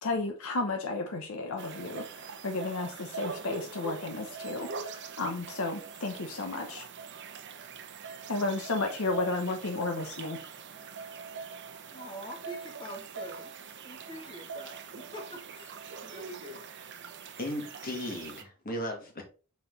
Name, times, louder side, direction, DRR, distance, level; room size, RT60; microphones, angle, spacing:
voice 1, 0.0-6.9 8.3-10.4, left 3 dB, 70° left, 0.9 m, -33 dB
sound 1, 1.6-18.4, right 5 dB, 55° right, 0.8 m, -43 dB
voice 2, 11.9-13.5 13.8-15.8 16.0-16.6, right 1 dB, 25° left, 1.6 m, -44 dB
voice 3, 17.4-19.2, left 1 dB, 40° left, 1.9 m, -36 dB
5.8 x 4.3 x 3.9 m
head